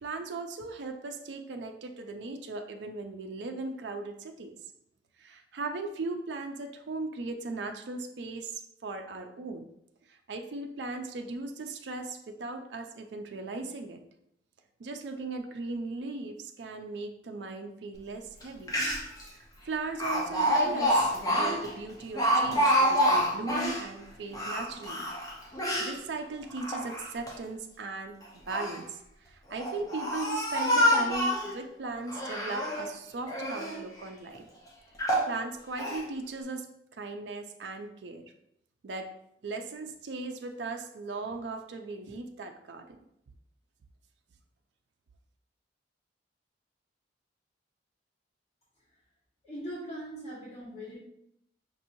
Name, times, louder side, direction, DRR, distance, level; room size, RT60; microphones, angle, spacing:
voice 1, 0.0-4.6 5.2-9.7 10.1-14.0 14.8-18.8 19.3-25.1 25.8-28.2 28.5-34.5 35.3-36.7 36.9-38.2 38.8-39.1 39.4-43.0, right 3 dB, 65° right, 5 dB, 0.4 m, -38 dB
Speech, 18.4-18.5 18.7-19.2 20.0-23.8 24.3-25.9 26.5-27.3 28.2-28.8 29.5-31.5 32.1-32.9 33.3-33.8 34.4-34.5 35.0-35.3 35.8-36.0, equal, 20° left, 0.8 m, -27 dB
voice 2, 49.4-51.0, equal, 35° left, -10 dB, 1.6 m, -40 dB
5.9 x 2.9 x 2.6 m, 0.77 s
head